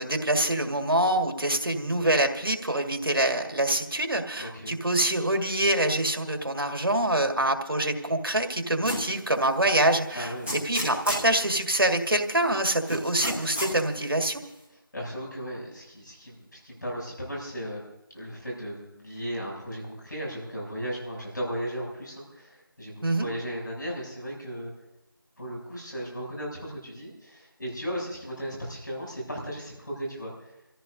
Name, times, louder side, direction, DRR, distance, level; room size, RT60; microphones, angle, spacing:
voice 1, 0.0-10.3 10.7-14.4 23.0-23.3, right 1 dB, 75° right, 4 dB, 1.9 m, -25 dB
voice 2, 4.3-4.8 10.1-10.6 14.9-17.8 18.1-24.7 25.4-30.5, equal, 55° left, -2 dB, 7.2 m, -36 dB
sound 1, 8.8-9.2 9.7-9.8 10.4-11.3 12.9-13.8, equal, 5° left, 0.7 m, -31 dB
30.0 x 14.5 x 2.7 m, 0.90 s
figure-of-eight pair, 175°, 12 cm